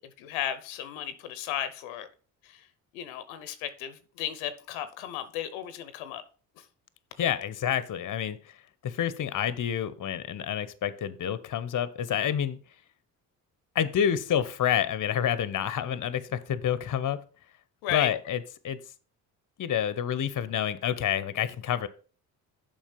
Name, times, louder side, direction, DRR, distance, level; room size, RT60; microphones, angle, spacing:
voice 1, 0.2-2.1 2.4-2.7 2.9-6.2 6.6-6.7 17.8-18.1, left 11 dB, 85° left, 0.8 m, -34 dB
voice 2, 7.2-8.6 8.8-12.6 13.7-17.2 17.9-18.8 19.6-21.9, left 9 dB, 45° left, 0.9 m, -28 dB
7.3 x 5.2 x 5.3 m
hypercardioid pair, 50°, 45 cm